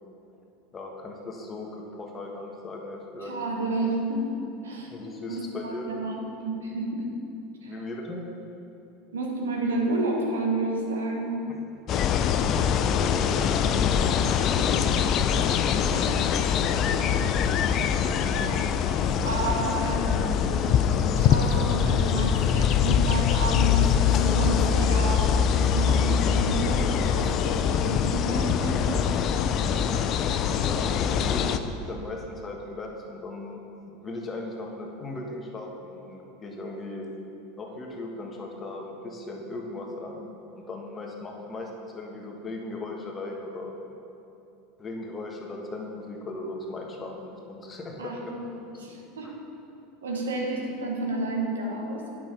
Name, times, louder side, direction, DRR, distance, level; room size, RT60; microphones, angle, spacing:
voice 1, 0.7-3.3 4.9-5.9 7.7-8.2 11.5-11.6 12.8-14.1 30.6-33.6 34.0-37.1 37.6-40.2 40.5-43.7 44.8-48.4 49.2-49.3, left 2 dB, 25° left, 0 dB, 1.5 m, -38 dB
voice 2, 3.2-4.3 4.6-4.9 5.3-6.2 6.4-7.1 7.6-7.8 9.1-11.5 14.6-14.9 15.9-16.3 16.9-17.4 18.3-18.8 19.2-20.6 21.0-29.2 48.0-48.5 48.8-49.4 50.0-52.1, right 2 dB, 80° right, 0 dB, 1.3 m, -31 dB
sound 1, 11.9-31.6, left 7 dB, 45° left, 0.4 m, -23 dB
9.3 x 6.2 x 5.2 m, 2.8 s
figure-of-eight pair, 80°, 0 cm